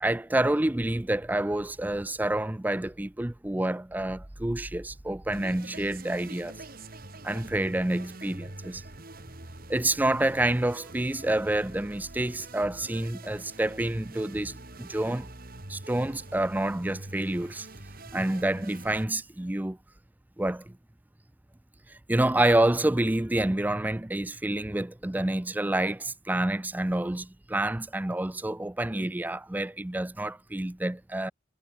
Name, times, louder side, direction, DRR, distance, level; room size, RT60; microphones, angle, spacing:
voice 1, 0.0-6.5 7.2-8.8 9.7-15.3 15.7-17.7 18.1-19.8 20.4-20.6 22.1-31.3, right 1 dB, 10° right, 0.4 m, -28 dB
sound 1, 5.3-19.0, right 2 dB, 50° right, 3.3 m, -45 dB
head